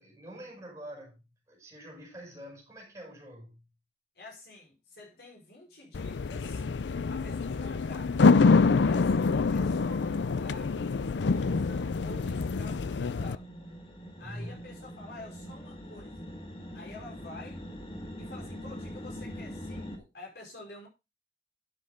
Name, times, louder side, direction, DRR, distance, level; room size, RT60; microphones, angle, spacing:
voice 1, 0.0-3.6 14.2-14.6, equal, 20° right, 7.1 m, -45 dB
voice 2, 4.1-6.6 7.1-8.3 8.8-10.8 11.2-13.5 14.2-16.3 16.7-17.6 18.2-20.9, left 2 dB, 65° left, 5.1 m, -48 dB
sound 1, 5.9-13.4, left 4 dB, 85° left, 0.5 m, -26 dB
sound 2, 9.6-20.0, equal, 30° left, 2.1 m, -45 dB
12.0 x 7.9 x 3.8 m
head